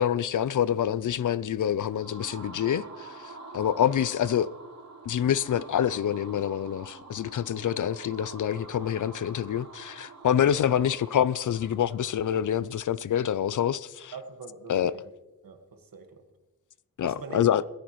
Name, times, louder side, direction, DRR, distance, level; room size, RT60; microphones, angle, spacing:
voice 1, 0.0-4.5 5.1-14.1 14.7-14.9 17.0-17.6, left 9 dB, 60° left, 0.5 m, -26 dB
sound 1, 1.6-12.5, right 3 dB, 45° right, 3.2 m, -47 dB
voice 2, 14.1-15.0 15.4-16.2 17.0-17.6, right 5 dB, 70° right, 1.7 m, -42 dB
17.5 x 15.0 x 3.1 m
wide cardioid pair, 95°, 36 cm